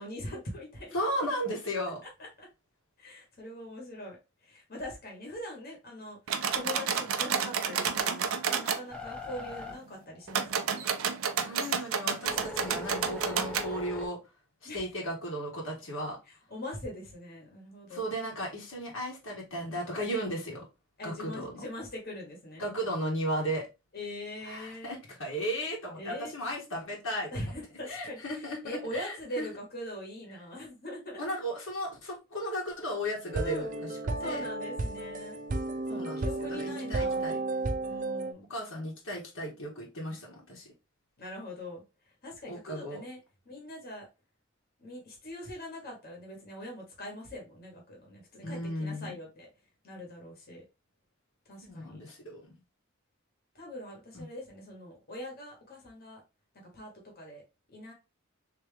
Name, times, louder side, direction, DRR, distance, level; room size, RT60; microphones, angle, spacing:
voice 1, 0.0-1.0 2.2-2.5 3.0-4.2 4.4-6.2 6.5-11.1 14.6-14.8 16.3-18.0 21.0-22.6 23.9-25.0 25.9-26.3 27.3-31.2 33.4-33.7 34.2-35.4 35.9-37.4 37.8-38.5 41.2-41.8 42.2-43.2 43.4-44.1 44.8-49.5 49.8-50.6 51.5-52.0 53.5-56.2 56.7-57.4 57.7-57.9, left 1 dB, 50° left, 1.4 m, -42 dB
voice 2, 0.9-2.0 11.4-14.2 14.6-16.2 17.9-20.6 21.0-21.6 22.6-23.7 24.4-27.5 27.8-29.5 31.2-34.4 35.9-37.4 38.5-40.7 42.5-43.0 48.4-49.2 51.6-52.4 54.1-54.3, equal, 75° left, 1.4 m, -35 dB
sound 1, 6.3-8.8 10.3-13.7, right 7 dB, 90° right, 0.5 m, -30 dB
sound 2, 8.9-10.7 11.2-14.1, left 2 dB, 5° left, 0.6 m, -41 dB
sound 3, 33.3-38.3, right 2 dB, 40° right, 0.5 m, -33 dB
3.3 x 2.9 x 3.3 m
head